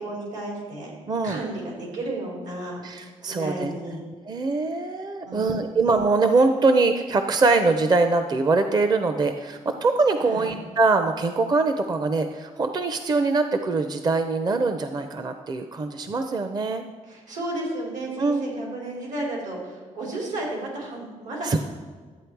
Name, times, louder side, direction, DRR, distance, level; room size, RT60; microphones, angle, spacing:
voice 1, 0.0-0.9 1.2-3.0 3.2-4.0 5.2-5.7 10.2-10.5 17.1-21.6, right 2 dB, 80° right, -2 dB, 4.1 m, -33 dB
voice 2, 1.1-1.4 2.8-3.7 4.3-16.8 18.2-18.4 21.4-21.6, right 3 dB, 30° right, 7 dB, 0.6 m, -23 dB
12.5 x 8.5 x 4.6 m, 1.5 s
cardioid pair, 130°, 13 cm